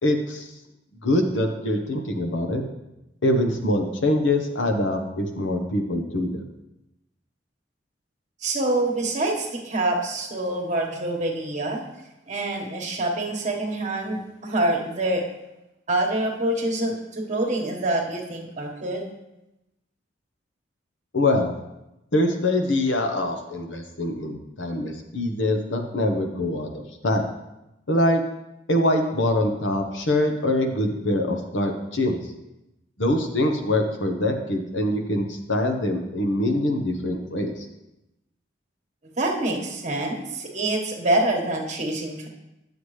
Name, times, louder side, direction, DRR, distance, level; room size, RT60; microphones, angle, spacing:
voice 1, 0.0-0.5 1.0-2.6 3.2-6.4 21.1-21.5 22.1-27.2 27.9-28.2 28.7-32.2 33.0-37.7, left 1 dB, 80° left, 4 dB, 1.0 m, -24 dB
voice 2, 8.4-11.9 12.3-15.3 15.9-19.0 39.2-42.3, right 1 dB, 40° right, 0 dB, 1.3 m, -26 dB
9.8 x 7.0 x 3.2 m, 0.92 s
head